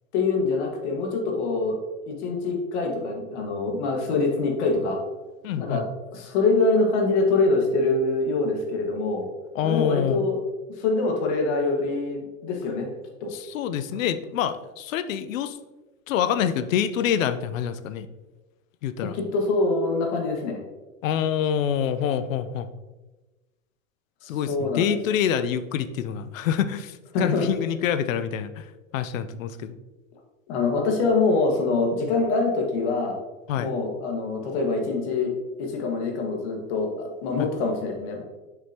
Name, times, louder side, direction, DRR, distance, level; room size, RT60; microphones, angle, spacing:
voice 1, 0.1-1.8 2.1-5.0 5.6-5.8 6.1-9.3 9.6-10.4 10.8-12.9 13.2-13.3 19.0-20.6 24.3-24.9 27.1-27.4 30.5-33.2 33.5-35.3 35.6-38.2, left 3 dB, 55° left, 2 dB, 1.7 m, -24 dB
voice 2, 5.4-5.9 9.5-10.3 13.3-15.6 16.1-18.1 18.8-19.2 21.0-22.7 24.2-28.6 28.9-29.8 33.5-33.7 37.4-37.5, left 9 dB, 80° left, 12 dB, 0.6 m, -26 dB
7.0 x 5.1 x 2.9 m, 1.1 s
hypercardioid pair, 130°, 39 cm